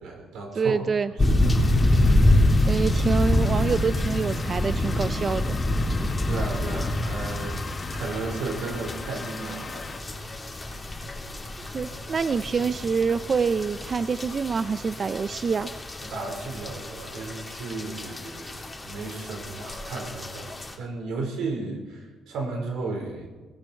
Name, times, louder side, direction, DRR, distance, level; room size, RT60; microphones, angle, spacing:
voice 1, 0.0-0.8 1.1-2.1 6.3-7.6 7.9-10.3 16.0-23.4, right 3 dB, 90° right, 2 dB, 4.3 m, -34 dB
voice 2, 0.6-1.1 2.7-5.6 11.7-15.7, right 5 dB, 40° right, 13 dB, 0.5 m, -26 dB
sound 1, 1.2-20.7, left 1 dB, 20° left, 2.8 m, -26 dB
sound 2, 1.4-10.0, left 4 dB, 40° left, 1.5 m, -40 dB
18.5 x 16.5 x 4.4 m, 1.3 s
cardioid pair, 105°, 0 cm